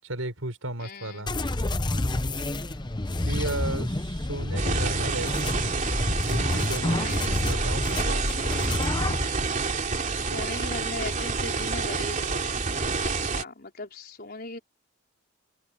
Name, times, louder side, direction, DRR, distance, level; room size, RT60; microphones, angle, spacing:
voice 1, 0.0-1.3 2.1-2.4 3.2-5.7 6.2-8.5, right 2 dB, 85° right, 5.6 m, -35 dB
voice 2, 0.8-1.3 7.0-7.4 10.1-12.4 13.0-14.6, left 2 dB, 50° left, 4.4 m, -38 dB
sound 1, 1.3-9.3, left 1 dB, 20° left, 0.9 m, -28 dB
sound 2, 4.6-13.4, right 4 dB, 40° right, 3.2 m, -28 dB
head